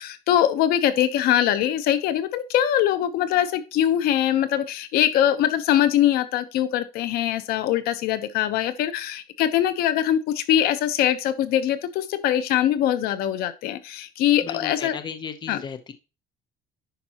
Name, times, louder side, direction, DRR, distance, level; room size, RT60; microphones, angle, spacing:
voice 1, 0.0-15.0 15.5-15.6, left 11 dB, 70° left, 12 dB, 1.0 m, -22 dB
voice 2, 14.4-15.9, left 6 dB, 25° left, 9 dB, 0.8 m, -35 dB
10.0 x 5.4 x 2.9 m, 0.30 s
cardioid pair, 140°, 16 cm